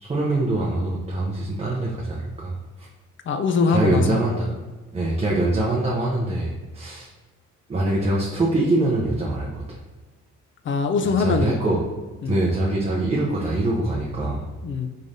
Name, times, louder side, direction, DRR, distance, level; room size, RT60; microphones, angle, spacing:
voice 1, 0.0-2.9 3.7-4.5 4.9-7.1 7.7-9.6 11.2-11.8 12.2-14.4, right 2 dB, 20° right, -4 dB, 0.6 m, -24 dB
voice 2, 3.3-4.2 10.6-11.6 12.2-12.4 14.6-14.9, left 5 dB, 40° left, 7 dB, 0.4 m, -22 dB
3.7 x 3.2 x 2.6 m, 1.3 s
cardioid pair, 90°, 30 cm